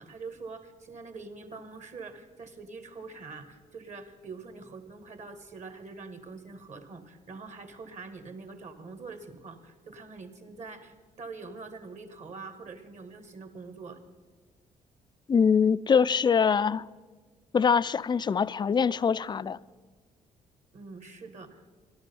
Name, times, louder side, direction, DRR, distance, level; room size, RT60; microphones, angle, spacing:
voice 1, 0.0-14.0 20.7-21.6, right 4 dB, 45° right, 1.6 m, -44 dB
voice 2, 15.3-16.9 17.5-19.6, left 6 dB, 25° left, 0.3 m, -23 dB
13.0 x 11.5 x 5.4 m
hypercardioid pair, 55°, 17 cm